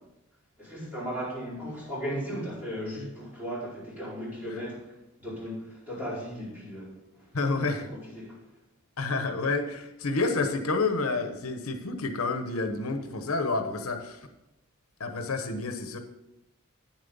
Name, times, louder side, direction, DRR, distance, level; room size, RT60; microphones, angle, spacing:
voice 1, 0.6-8.4, equal, 10° right, -8 dB, 4.5 m, -37 dB
voice 2, 7.3-7.9 9.0-14.2 15.0-16.0, left 3 dB, 85° left, 7 dB, 1.0 m, -29 dB
9.8 x 7.5 x 5.4 m, 0.91 s
head